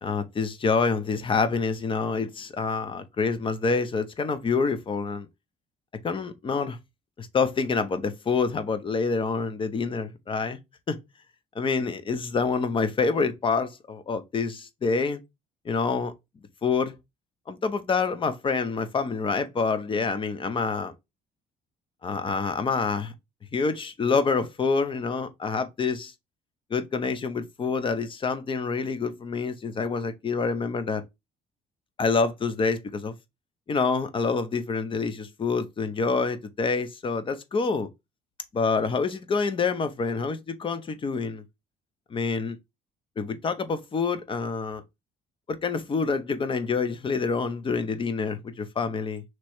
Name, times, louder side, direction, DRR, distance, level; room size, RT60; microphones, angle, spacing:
voice 1, 0.0-5.3 6.0-6.8 7.2-10.6 10.9-11.0 11.5-15.2 15.6-16.1 16.6-16.9 17.5-20.9 22.0-23.1 23.5-26.1 26.7-31.0 32.0-33.1 33.7-37.9 38.5-41.4 42.1-42.6 43.2-44.8 45.5-49.2, left 4 dB, 30° left, 0.7 m, -27 dB
3.2 x 3.0 x 4.4 m
cardioid pair, 110°, 17 cm